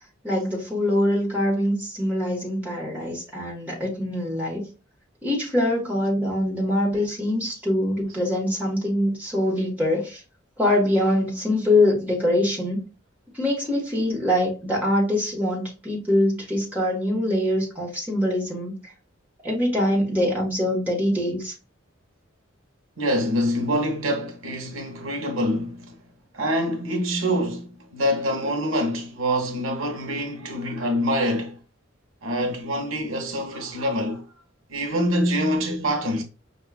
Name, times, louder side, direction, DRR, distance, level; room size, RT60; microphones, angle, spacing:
voice 1, 0.2-4.7 5.2-10.2 10.6-12.8 13.3-18.8 19.4-21.5, left 1 dB, 10° right, 1.3 m, -23 dB
voice 2, 23.0-26.0 26.3-31.6 32.2-34.3 34.7-36.2, equal, 85° right, 0.9 m, -25 dB
5.4 x 2.3 x 2.3 m
head